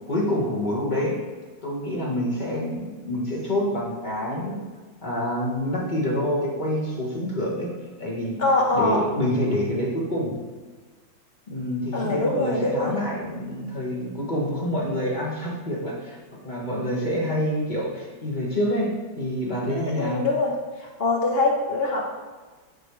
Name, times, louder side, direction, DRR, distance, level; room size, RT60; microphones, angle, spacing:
voice 1, 0.1-1.2 1.6-4.6 5.0-7.7 8.0-8.4 8.7-10.3 11.5-16.2 16.4-20.3, equal, 30° left, -4 dB, 1.2 m, -27 dB
voice 2, 8.4-9.0 11.9-12.9 19.7-20.5 21.0-22.0, left 2 dB, 80° left, -1 dB, 0.5 m, -23 dB
9.4 x 3.2 x 4.6 m, 1.3 s
omnidirectional pair, 2.0 m